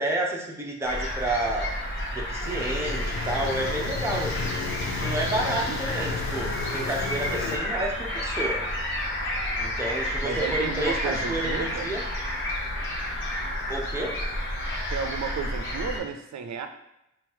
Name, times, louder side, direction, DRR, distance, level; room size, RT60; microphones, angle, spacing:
voice 1, 0.0-1.7 2.1-4.5 5.0-8.6 9.6-12.0 13.7-14.2, right 1 dB, 10° right, -2 dB, 0.7 m, -30 dB
sound 1, 0.8-16.0, left 1 dB, 40° left, 1.2 m, -31 dB
sound 2, 2.4-7.6, left 4 dB, 70° left, 0.6 m, -34 dB
sound 3, 6.6-14.3, equal, 25° left, 1.5 m, -48 dB
voice 2, 10.2-11.9 14.9-16.7, right 6 dB, 70° right, 7 dB, 0.5 m, -32 dB
3.9 x 2.4 x 4.2 m, 0.88 s
wide cardioid pair, 135°, 29 cm